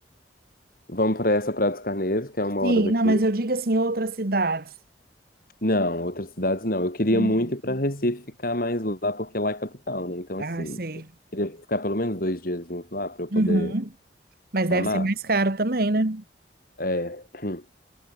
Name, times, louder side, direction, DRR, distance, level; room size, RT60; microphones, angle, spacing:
voice 1, 0.9-3.2 5.6-10.8 11.3-13.7 14.7-15.1 16.8-17.6, left 1 dB, 55° left, 7.6 m, -27 dB
voice 2, 2.6-4.7 7.1-7.3 10.4-11.1 13.3-13.9 14.5-16.2, right 2 dB, 60° right, 1.6 m, -24 dB
head